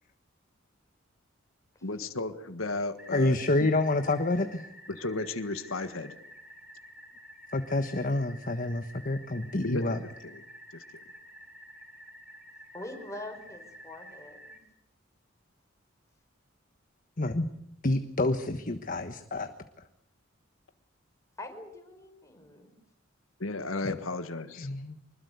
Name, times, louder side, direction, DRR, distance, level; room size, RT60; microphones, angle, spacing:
voice 1, 1.8-3.7 4.9-6.1 9.6-10.4 10.7-10.8 23.4-24.7, left 2 dB, 85° left, 9 dB, 1.6 m, -34 dB
sound 1, 3.0-14.6, equal, 5° right, 4.1 m, -50 dB
voice 2, 3.1-4.6 7.5-10.0 17.2-17.5 17.8-19.5 23.8-23.9 24.6-25.0, left 2 dB, 40° left, 8 dB, 1.3 m, -28 dB
voice 3, 12.7-14.4 21.4-22.7, left 1 dB, 15° left, 4 dB, 5.3 m, -43 dB
25.5 x 21.0 x 8.2 m, 0.78 s
head